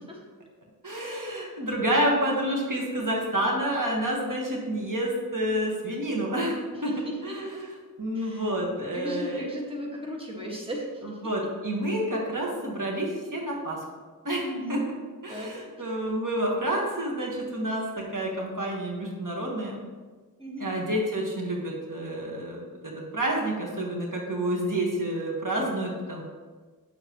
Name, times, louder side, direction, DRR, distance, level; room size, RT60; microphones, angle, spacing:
voice 1, 0.8-6.6 6.8-6.9 7.2-7.7 8.0-9.5 11.0-13.8 14.2-14.4 14.7-14.8 15.2-17.8 18.1-19.8 20.6-26.2, right 1 dB, 60° right, -3 dB, 1.5 m, -29 dB
voice 2, 6.7-7.6 8.1-8.5 8.9-11.2 14.4-14.8 15.3-15.9 20.4-20.7, equal, 15° right, -2 dB, 1.7 m, -36 dB
8.9 x 7.1 x 3.0 m, 1.4 s
wide cardioid pair, 45°, 36 cm